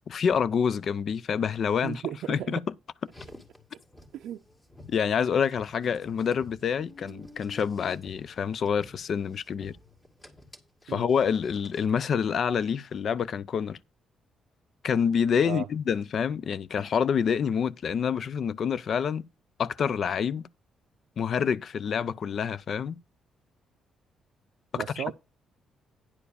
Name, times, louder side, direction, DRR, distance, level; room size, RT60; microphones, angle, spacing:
voice 1, 0.1-2.0 2.3-2.6 4.9-9.8 10.9-13.8 14.8-19.2 19.6-20.5 21.2-23.0 24.7-25.1, left 7 dB, 55° left, 0.4 m, -27 dB
voice 2, 1.8-2.6 4.1-4.4 10.9-11.1 15.4-15.7 24.7-25.1, right 11 dB, 80° right, 0.5 m, -35 dB
Car, 3.0-12.0, left 2 dB, 20° left, 2.0 m, -51 dB
9.9 x 4.6 x 6.8 m
cardioid pair, 90°, 0 cm